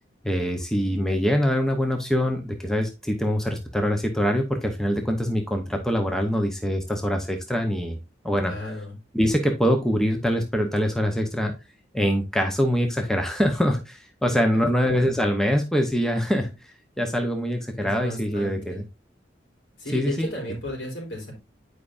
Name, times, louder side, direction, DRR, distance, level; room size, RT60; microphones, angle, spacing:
voice 1, 0.2-8.0 8.2-8.5 9.1-11.5 11.9-18.8 19.9-20.3, equal, 5° left, 3 dB, 0.7 m, -24 dB
voice 2, 8.4-8.9 14.5-15.0 17.8-18.8 19.8-21.3, left 1 dB, 75° left, -1 dB, 3.4 m, -34 dB
9.3 x 4.8 x 2.5 m, 0.26 s
head